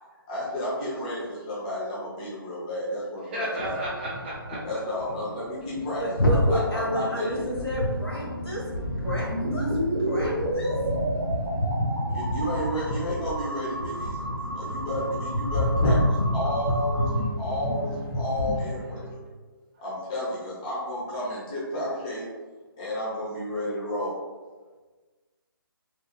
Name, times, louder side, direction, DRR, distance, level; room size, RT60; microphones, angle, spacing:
voice 1, 0.3-3.8 4.6-7.5 12.1-19.0 19.8-22.2 22.8-24.2, left 1 dB, 20° left, -8 dB, 0.5 m, -32 dB
voice 2, 3.3-4.6, equal, 25° right, -6 dB, 0.8 m, -33 dB
sound 1, 3.6-4.7 5.0-5.2 5.5-18.7, left 1 dB, 60° left, 0.5 m, -28 dB
voice 3, 6.0-8.6 9.0-9.8 10.0-10.8, equal, 85° left, -4 dB, 1.1 m, -31 dB
sound 2, 6.8-19.2, equal, 35° left, 1.0 m, -39 dB
sound 3, 9.3-17.2, right 1 dB, 70° right, 0.7 m, -32 dB
2.8 x 2.3 x 2.2 m, 1.3 s
figure-of-eight pair, 155°, 12 cm